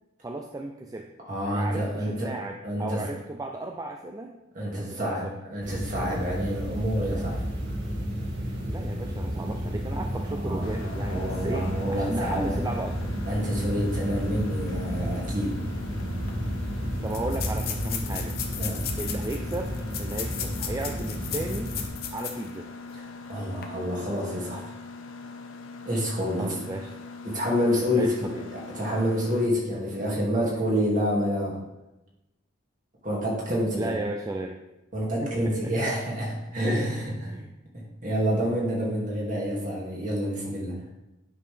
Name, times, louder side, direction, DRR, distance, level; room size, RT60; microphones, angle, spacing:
voice 1, 0.2-1.1 1.5-4.3 4.8-5.3 8.4-13.1 17.0-18.4 19.0-19.7 20.0-21.7 22.1-22.7 26.4-26.9 28.0-28.5 30.4-30.5 33.7-34.6 35.2-35.7 37.2-37.5, right 2 dB, 15° right, 3 dB, 0.4 m, -35 dB
voice 2, 1.2-2.3 2.6-3.0 4.5-7.4 10.3-10.7 11.1-12.6 13.3-15.6 18.6-18.8 22.9-23.0 23.3-24.6 25.8-26.6 27.2-31.6 33.0-33.9 34.9-37.3 37.7-40.8, equal, 40° right, -3 dB, 2.2 m, -28 dB
sound 1, 5.6-21.9, equal, 60° right, 2.1 m, -32 dB
Mechanisms, 10.6-29.5, left 4 dB, 75° left, 0.6 m, -42 dB
sound 2, 16.0-16.1 16.3-16.4 17.1-22.5 22.9-23.0 23.5-23.6, left 8 dB, 50° left, 0.9 m, -36 dB
9.4 x 5.7 x 3.4 m, 0.96 s
head